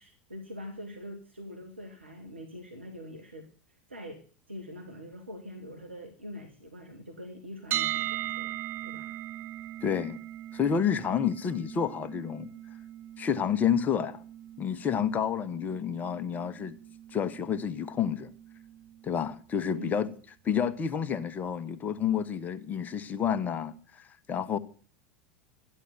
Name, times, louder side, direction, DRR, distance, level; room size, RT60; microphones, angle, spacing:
voice 1, 0.0-8.5 8.8-9.2 19.6-20.1, left 1 dB, 85° right, 2.1 m, -44 dB
sound 1, 7.7-19.6, right 13 dB, 35° right, 0.8 m, -39 dB
voice 2, 9.8-10.2 10.5-12.5 13.2-14.2 14.6-16.8 17.1-18.3 19.0-20.1 20.4-24.6, left 8 dB, 25° left, 1.3 m, -29 dB
13.5 x 10.5 x 8.3 m
figure-of-eight pair, 80°, 6 cm